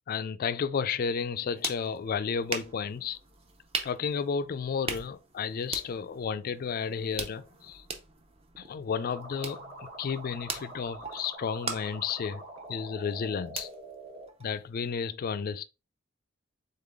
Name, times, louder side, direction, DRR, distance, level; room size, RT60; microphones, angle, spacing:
voice 1, 0.1-3.2 3.8-7.8 8.6-12.4 12.7-13.7 14.4-15.6, left 6 dB, 45° left, 0.3 m, -32 dB
sound 1, 1.2-14.9, right 4 dB, 30° right, 0.7 m, -42 dB
sound 2, 9.0-14.3, right 1 dB, 50° right, 1.3 m, -45 dB
3.9 x 3.7 x 3.4 m
head